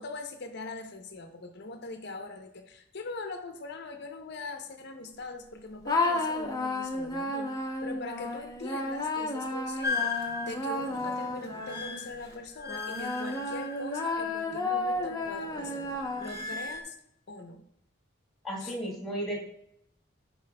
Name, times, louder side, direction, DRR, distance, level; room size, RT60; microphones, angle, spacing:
voice 1, 0.0-7.5 7.8-15.9 16.2-17.0 17.3-17.6 18.6-18.7, left 3 dB, 55° left, 5 dB, 0.7 m, -41 dB
sound 1, 5.9-12.1 12.7-16.6, left 2 dB, 20° left, 0.7 m, -32 dB
sound 2, 9.8-14.5 14.9-16.8, left 4 dB, 15° right, 1.0 m, -37 dB
voice 2, 18.4-19.5, right 1 dB, ahead, -4 dB, 1.8 m, -34 dB
10.5 x 4.4 x 2.2 m, 0.74 s
head